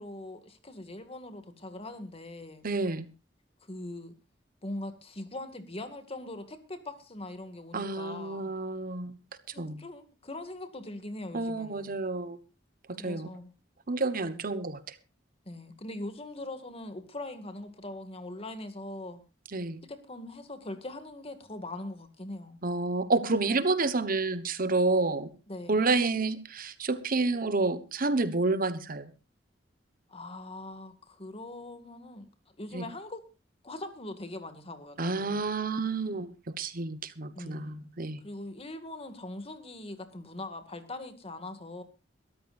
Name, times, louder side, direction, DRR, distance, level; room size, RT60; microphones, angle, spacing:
voice 1, 0.0-2.7 3.6-4.2 4.6-8.5 9.5-11.9 13.0-13.5 15.5-19.2 19.9-22.6 25.5-25.9 30.1-32.3 32.6-33.2 33.6-35.5 37.3-37.8 38.2-41.8, left 2 dB, 30° left, 9 dB, 2.1 m, -41 dB
voice 2, 2.6-3.1 7.7-9.2 9.6-9.8 11.3-12.4 12.9-13.3 13.9-14.8 19.5-19.8 22.6-25.3 25.7-29.1 32.7-32.8 35.0-38.2, right 3 dB, 50° right, 12 dB, 1.2 m, -29 dB
22.5 x 13.5 x 2.5 m, 0.30 s
head